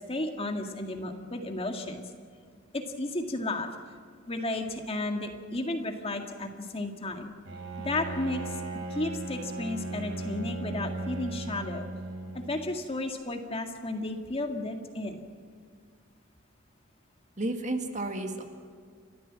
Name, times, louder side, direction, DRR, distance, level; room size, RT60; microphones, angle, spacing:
voice 1, 0.0-2.0 2.7-3.7 4.3-7.3 7.8-8.6 8.9-11.9 12.3-15.3, left 2 dB, 30° left, 4 dB, 1.9 m, -33 dB
Bowed string instrument, 7.5-12.8, right 2 dB, 75° right, 3.8 m, -37 dB
voice 2, 17.4-18.4, right 2 dB, 40° right, 5 dB, 1.9 m, -32 dB
30.0 x 14.0 x 7.6 m, 2.1 s
head